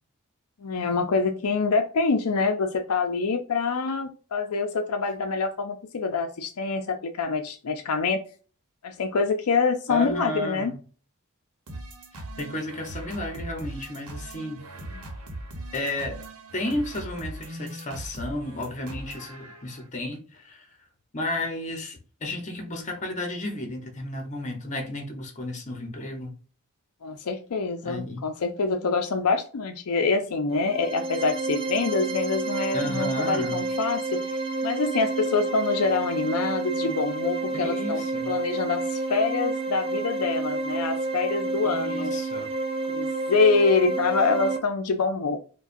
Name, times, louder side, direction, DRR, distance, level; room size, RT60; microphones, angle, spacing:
voice 1, 0.6-8.2 8.8-10.7 14.9-15.0 27.0-34.4 34.6-42.2 42.9-45.4, left 4 dB, 75° left, 0.5 m, -25 dB
voice 2, 9.9-10.8 12.1-14.6 15.7-16.3 16.5-20.7 21.1-26.4 27.8-28.3 32.7-33.6 37.5-38.4 41.6-42.5, left 1 dB, 35° left, 0.9 m, -33 dB
sound 1, 11.7-19.9, right 1 dB, 75° right, 1.0 m, -40 dB
sound 2, 30.5-44.6, right 3 dB, 25° right, 0.5 m, -29 dB
4.7 x 2.2 x 2.6 m
head